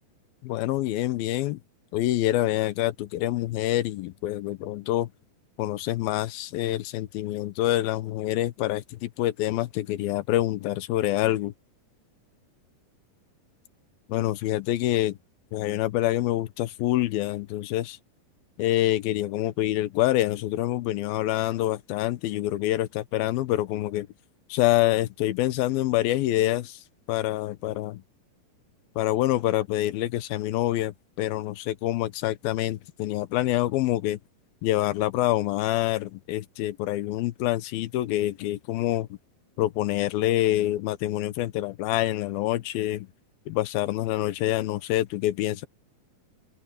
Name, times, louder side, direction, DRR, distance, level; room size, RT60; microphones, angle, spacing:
voice 1, 0.4-1.6 1.9-5.1 5.6-11.5 14.1-15.2 15.5-18.0 18.6-24.1 24.5-26.8 27.1-28.0 29.0-34.2 34.6-39.1 39.6-43.1 43.5-45.7, left 15 dB, 80° left, 2.7 m, -26 dB
open air
omnidirectional pair, 4.3 m